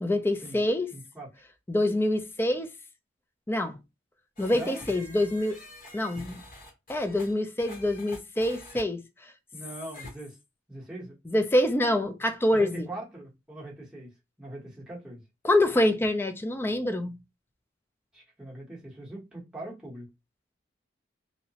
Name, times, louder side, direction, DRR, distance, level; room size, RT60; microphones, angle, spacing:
voice 1, 0.0-0.9 1.7-2.7 3.5-3.8 4.4-5.6 5.9-6.4 6.9-9.3 11.3-12.9 15.4-17.1, left 1 dB, 10° left, 0.3 m, -26 dB
voice 2, 0.9-1.3 4.5-4.8 9.5-10.4 10.7-11.1 12.5-14.1 14.4-15.2 18.1-20.1, right 1 dB, 5° right, 0.9 m, -41 dB
sound 1, 4.4-8.8 9.9-10.1, left 1 dB, 45° left, 1.0 m, -46 dB
2.7 x 2.1 x 2.7 m
head